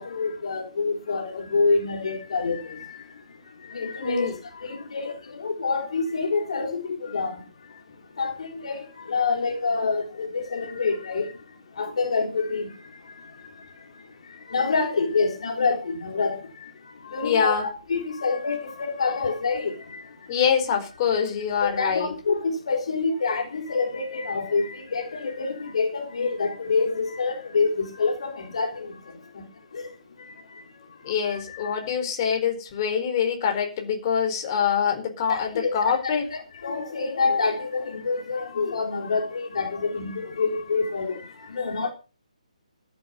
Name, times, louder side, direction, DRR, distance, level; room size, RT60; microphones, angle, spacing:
voice 1, 0.0-20.4 21.6-31.9 35.3-41.9, left 4 dB, 50° left, 3.6 m, -28 dB
voice 2, 4.0-4.3 17.2-17.7 20.3-22.1 31.0-36.3, left 7 dB, 30° left, 4.4 m, -25 dB
14.0 x 11.0 x 5.7 m
figure-of-eight pair, 140°, 4 cm